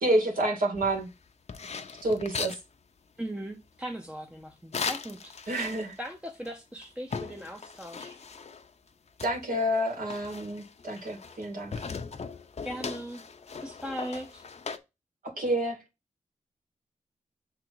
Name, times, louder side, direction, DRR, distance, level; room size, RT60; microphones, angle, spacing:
voice 1, 0.0-1.1 2.0-2.6 5.5-6.0 9.2-11.7 15.2-15.8, right 1 dB, 80° right, 2.4 m, -28 dB
sound 1, 0.7-2.6 4.7-6.1 6.4-6.5 6.8-8.7 9.2-11.4 11.7-14.8, left 5 dB, 50° left, 0.7 m, -38 dB
voice 2, 3.2-5.5 6.0-8.2 12.6-13.2 13.6-14.4, equal, 5° right, 0.7 m, -39 dB
6.8 x 3.8 x 4.6 m
wide cardioid pair, 140°, 14 cm